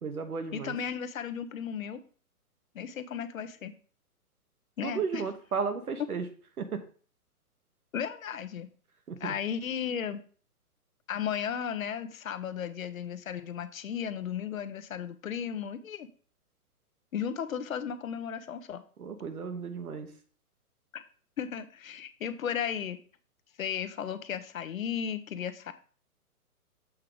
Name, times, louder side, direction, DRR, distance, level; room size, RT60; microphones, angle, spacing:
voice 1, 0.0-0.8 4.8-6.2 6.6-6.8 9.1-9.3 19.0-20.1, right 5 dB, 75° right, 6 dB, 1.1 m, -34 dB
voice 2, 0.5-2.0 2.7-3.7 4.8-5.2 7.9-8.7 9.2-10.2 11.1-16.1 17.1-18.8 20.9-21.0 21.4-23.0 23.6-25.7, left 8 dB, 65° left, 11 dB, 0.8 m, -35 dB
7.6 x 4.7 x 3.8 m, 0.42 s
figure-of-eight pair, 130°, 45 cm